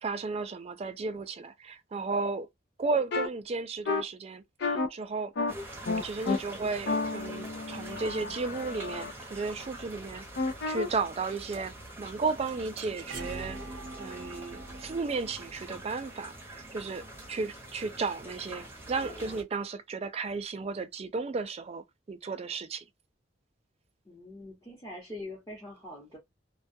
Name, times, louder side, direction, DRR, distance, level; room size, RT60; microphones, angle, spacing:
voice 1, 0.0-2.5 2.8-5.3 6.0-13.6 14.0-17.0 17.3-22.8, right 4 dB, 35° right, 0.3 m, -34 dB
sound 1, 3.1-3.3 3.9-4.0 4.6-4.9 5.4-5.5 5.9-6.4 6.9-9.1 10.4-10.9, left 3 dB, 60° left, 0.4 m, -31 dB
sound 2, 5.5-19.4, right 1 dB, 10° right, 0.7 m, -45 dB
sound 3, 11.9-17.5, right 2 dB, 90° right, 0.8 m, -45 dB
voice 2, 24.0-26.2, left 1 dB, 15° left, 0.9 m, -43 dB
2.2 x 2.2 x 2.6 m
head